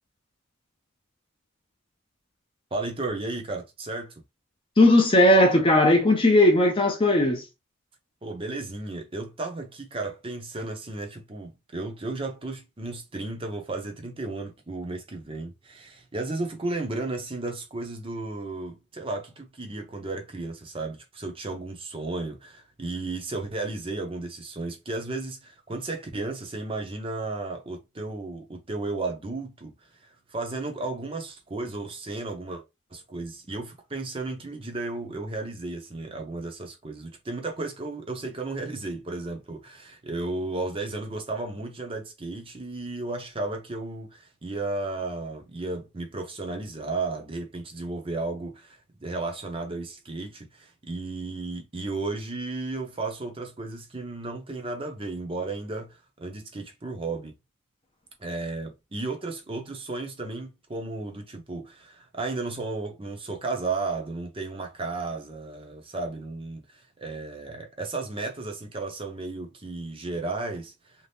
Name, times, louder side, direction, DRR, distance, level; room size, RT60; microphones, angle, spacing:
voice 1, 2.7-4.1 8.2-29.7 30.0-32.6 32.9-57.3 58.2-70.7, right 3 dB, 25° right, 0.6 m, -34 dB
voice 2, 4.8-7.5, left 1 dB, 25° left, 0.6 m, -18 dB
2.7 x 2.4 x 3.4 m
head